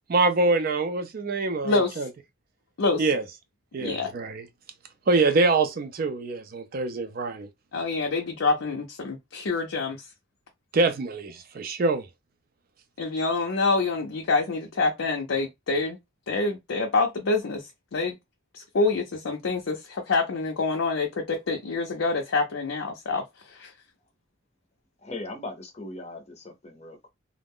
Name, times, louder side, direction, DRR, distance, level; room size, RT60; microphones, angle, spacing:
voice 1, 0.1-2.1 3.0-3.2 3.7-4.4 5.1-7.5 10.7-12.1, right 3 dB, 45° right, 0.4 m, -25 dB
voice 2, 1.6-2.0 2.8-3.1 3.8-4.1 7.7-10.1 13.0-16.0 16.3-18.2 18.5-23.7, left 3 dB, 80° left, 0.5 m, -26 dB
voice 3, 25.0-27.1, left 2 dB, 35° left, 0.6 m, -39 dB
2.4 x 2.1 x 3.5 m
head